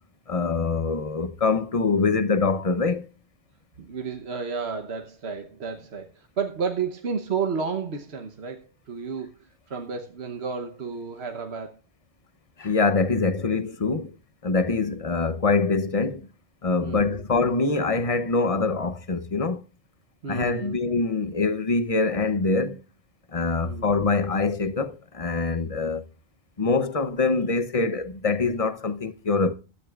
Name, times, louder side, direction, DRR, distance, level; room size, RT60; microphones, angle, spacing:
voice 1, 0.3-3.1 12.6-14.2 14.4-16.3 16.6-19.6 20.3-22.8 23.3-26.0 26.6-29.5, left 4 dB, 35° left, 0.9 m, -24 dB
voice 2, 3.8-11.8 16.8-17.3 20.2-20.8 21.0-21.1 23.6-23.9, right 5 dB, 65° right, 1.3 m, -32 dB
17.0 x 12.5 x 2.4 m
omnidirectional pair, 1.2 m